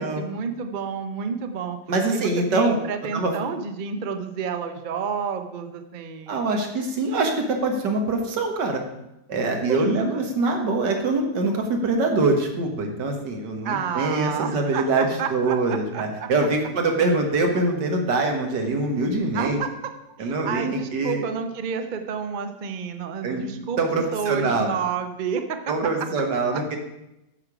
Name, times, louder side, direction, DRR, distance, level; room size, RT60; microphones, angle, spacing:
voice 1, 0.0-1.8 2.1-6.4 9.7-10.2 13.6-16.3 19.3-19.7 20.2-23.8 24.1-25.6, right 6 dB, 45° right, 7 dB, 0.6 m, -30 dB
voice 2, 1.9-2.8 3.1-3.3 6.3-8.8 9.3-19.6 20.2-21.2 23.2-23.4 23.8-24.7 25.7-26.8, right 3 dB, 85° right, 3 dB, 2.0 m, -24 dB
9.5 x 6.6 x 4.9 m, 0.90 s
omnidirectional pair, 1.8 m